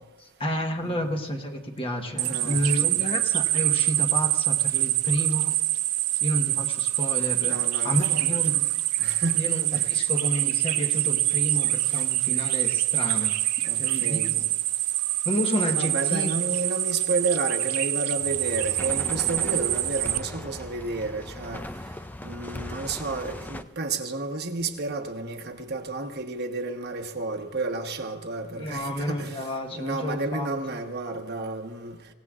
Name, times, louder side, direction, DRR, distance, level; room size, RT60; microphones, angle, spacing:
voice 1, 0.2-5.5 6.2-7.6 7.8-8.7 9.3-13.4 13.7-14.4 15.2-16.4 28.6-30.5, equal, 25° left, 1.2 m, -30 dB
voice 2, 0.8-1.1 2.2-3.1 7.4-8.3 9.0-9.4 9.7-9.9 13.6-14.4 15.7-21.6 22.2-32.0, right 3 dB, 45° right, 1.2 m, -31 dB
sound 1, 2.2-20.2, right 15 dB, 85° right, 0.6 m, -25 dB
sound 2, 18.2-23.6, left 1 dB, 10° left, 0.4 m, -38 dB
25.5 x 17.0 x 2.5 m
head